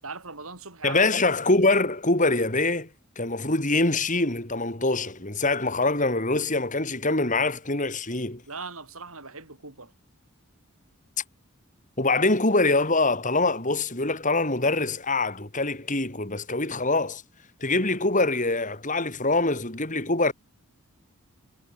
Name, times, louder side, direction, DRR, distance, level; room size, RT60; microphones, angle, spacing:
voice 1, 0.0-1.0 8.5-9.9, right 4 dB, 70° right, 5.8 m, -39 dB
voice 2, 0.8-2.9 3.2-8.4 12.0-17.2 17.6-20.3, left 2 dB, 35° left, 4.1 m, -24 dB
head